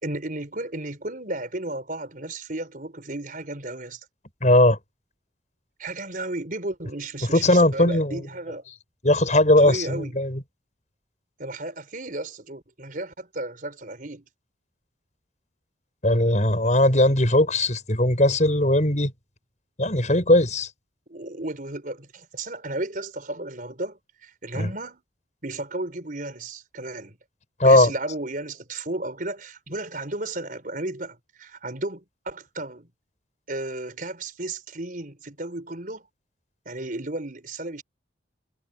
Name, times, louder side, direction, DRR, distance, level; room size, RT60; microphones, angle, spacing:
voice 1, 0.0-4.0 5.8-8.7 9.6-10.1 11.4-14.2 21.1-25.0 25.4-27.2 27.6-32.9 33.5-36.1 36.7-37.8, right 2 dB, 45° right, 5.2 m, -34 dB
voice 2, 4.4-4.8 7.3-8.2 9.0-10.4 16.0-19.1 19.8-20.7 24.5-24.7 27.6-27.9, left 1 dB, 40° left, 6.6 m, -19 dB
head